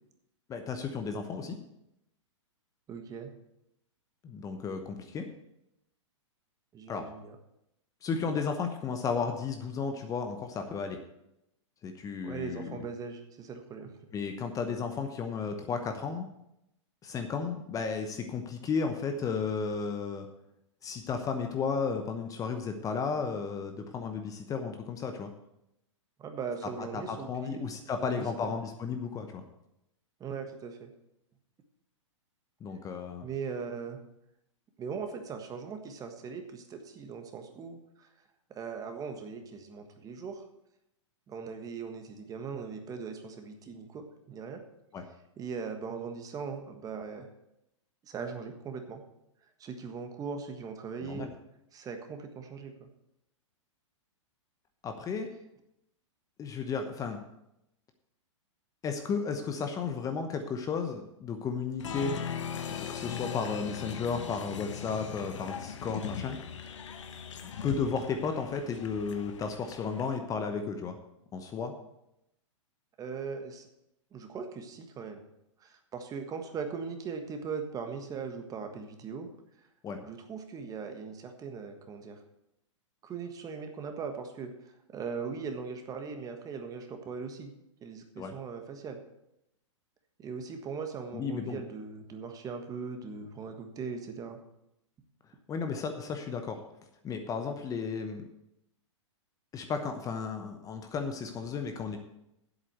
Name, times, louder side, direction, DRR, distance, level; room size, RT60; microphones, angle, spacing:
voice 1, 0.5-1.6 4.2-5.3 6.9-7.0 8.0-11.0 11.8-12.8 14.1-16.3 17.0-20.3 20.8-25.3 26.8-29.4 32.6-33.3 44.9-45.0 51.0-51.3 54.8-55.3 56.4-57.2 58.8-62.2 62.6-66.4 67.6-71.0 71.3-71.7 79.8-80.0 88.2-88.3 91.1-91.6 95.5-96.6 97.0-98.3 99.5-102.0, left 5 dB, 20° left, 6 dB, 0.9 m, -33 dB
voice 2, 2.9-3.3 6.7-7.4 12.2-14.0 26.2-27.7 28.0-28.5 30.2-30.9 33.2-34.0 34.8-38.1 38.5-40.5 41.3-44.6 45.4-47.3 48.0-49.0 49.6-51.3 51.7-52.9 73.0-73.7 74.1-75.2 75.6-79.3 80.0-82.2 83.0-87.5 87.8-89.0 90.2-94.4, right 5 dB, 20° right, 6 dB, 1.4 m, -39 dB
Applause, 61.8-70.2, left 8 dB, 75° left, 1.1 m, -39 dB
8.1 x 7.5 x 8.0 m, 0.83 s
hypercardioid pair, 120°, 16 cm